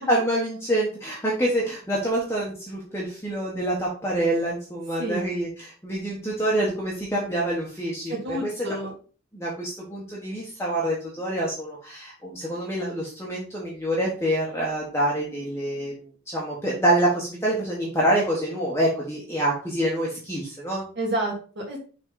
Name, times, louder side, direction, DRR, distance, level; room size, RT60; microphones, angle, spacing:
voice 1, 0.1-8.7 9.3-15.9 16.3-20.8, right 1 dB, 10° left, -4 dB, 1.4 m, -26 dB
voice 2, 8.1-8.9 21.0-21.8, right 1 dB, 50° right, -3 dB, 2.6 m, -29 dB
6.2 x 4.1 x 3.9 m, 0.38 s
head